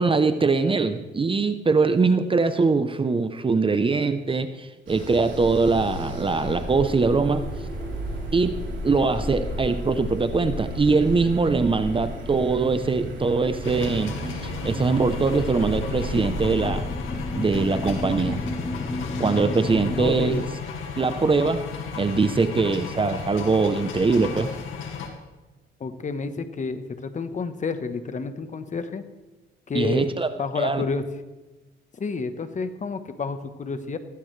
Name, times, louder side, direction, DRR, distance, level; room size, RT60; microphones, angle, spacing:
voice 1, 0.0-7.4 8.3-14.1 14.4-16.9 17.3-18.4 19.2-20.4 21.0-21.6 22.0-24.5 29.7-30.3 30.6-30.8, right 4 dB, 25° right, 10 dB, 0.8 m, -22 dB
sound 1, 4.9-16.5, right 4 dB, 70° right, 3.8 m, -38 dB
sound 2, 5.3-20.4, left 2 dB, 20° left, 1.1 m, -33 dB
sound 3, 13.6-25.1, left 6 dB, 80° left, 2.1 m, -35 dB
voice 2, 20.0-20.4 25.8-29.0 29.7-30.1 30.4-31.0 32.0-34.0, left 4 dB, 40° left, 10 dB, 1.2 m, -30 dB
16.0 x 15.5 x 3.3 m, 1.1 s
cardioid pair, 90°, 20 cm